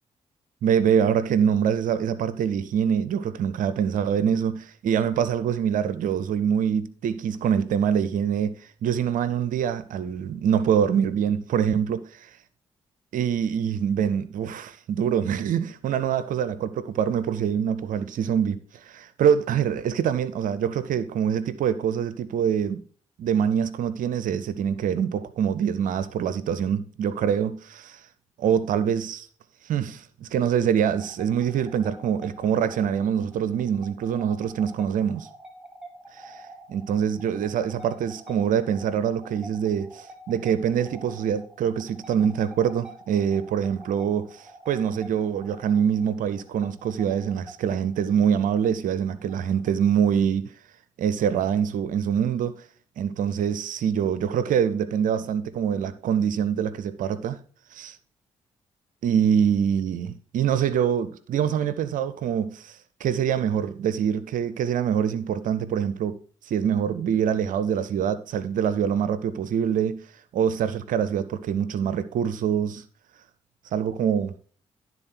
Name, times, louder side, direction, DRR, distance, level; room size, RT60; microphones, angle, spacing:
voice 1, 0.6-12.0 13.1-22.8 23.2-28.1 28.4-29.3 29.6-35.3 36.1-36.4 36.7-50.4 51.0-52.6 53.0-57.4 57.7-58.0 59.0-66.2 66.4-70.0 70.3-72.8 73.7-74.3, right 8 dB, 65° right, 0.6 m, -25 dB
sound 1, 30.7-50.1, right 1 dB, ahead, 2.1 m, -48 dB
11.5 x 4.0 x 4.4 m
hypercardioid pair, 40°, 15 cm